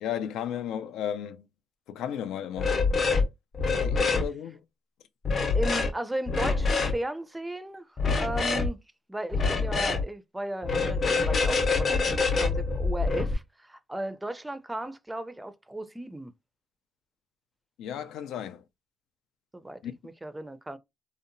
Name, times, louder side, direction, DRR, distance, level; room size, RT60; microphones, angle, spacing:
voice 1, 0.0-1.5 1.9-2.8 3.7-4.6 17.8-18.6 19.8-19.9, left 9 dB, 85° left, 0.3 m, -34 dB
sound 1, 2.6-3.3 3.5-4.3 5.3-5.9 6.3-6.9 8.0-8.7 9.3-10.0 10.6-13.3, left 4 dB, 45° left, 0.6 m, -25 dB
voice 2, 5.5-7.9 8.2-8.8 9.1-16.3 19.5-20.8, right 1 dB, 10° right, 0.4 m, -35 dB
2.7 x 2.0 x 2.5 m
cardioid pair, 100°, 0 cm